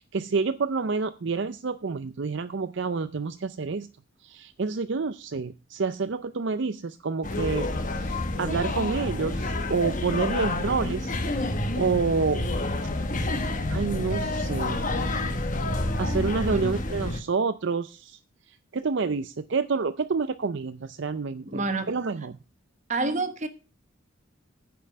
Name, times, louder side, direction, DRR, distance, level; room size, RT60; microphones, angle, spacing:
voice 1, 0.0-3.9 4.2-7.7 8.0-11.2 11.8-12.4 13.7-14.9 16.0-18.2 18.7-21.6 21.9-22.4, right 4 dB, 55° right, 0.5 m, -28 dB
sound 1, 7.2-17.2, left 2 dB, 40° left, 1.2 m, -28 dB
voice 2, 21.4-21.9 22.9-23.5, right 3 dB, 35° right, 1.1 m, -28 dB
9.7 x 5.5 x 7.5 m
head